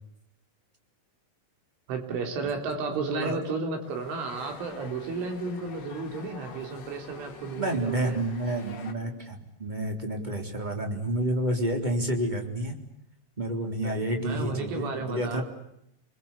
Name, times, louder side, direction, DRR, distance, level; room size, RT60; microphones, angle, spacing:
voice 1, 1.9-8.2 13.8-15.4, right 4 dB, 70° right, 4 dB, 6.0 m, -33 dB
voice 2, 2.9-3.4 7.5-12.8 13.4-15.4, right 1 dB, 10° right, 3 dB, 2.8 m, -29 dB
sound 1, 3.8-8.9, left 5 dB, 45° left, 2.4 m, -47 dB
28.5 x 22.0 x 8.5 m, 0.81 s
omnidirectional pair, 5.8 m